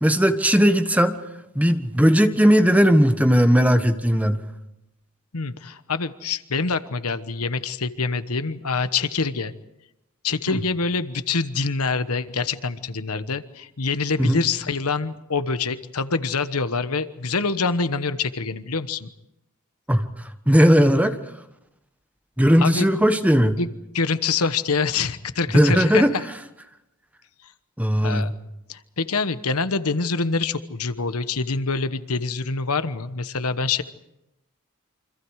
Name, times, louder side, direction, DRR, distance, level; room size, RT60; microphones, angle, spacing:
voice 1, 0.0-1.1 1.5-4.4 14.2-14.4 19.9-20.1 20.5-21.2 22.4-23.6 25.5-26.1 27.8-28.3, equal, 5° right, 8 dB, 1.3 m, -17 dB
voice 2, 5.3-9.5 10.2-19.1 22.6-22.9 23.6-26.2 28.0-28.3 28.7-33.8, left 4 dB, 75° left, 12 dB, 1.2 m, -25 dB
28.5 x 26.0 x 4.9 m, 0.88 s
head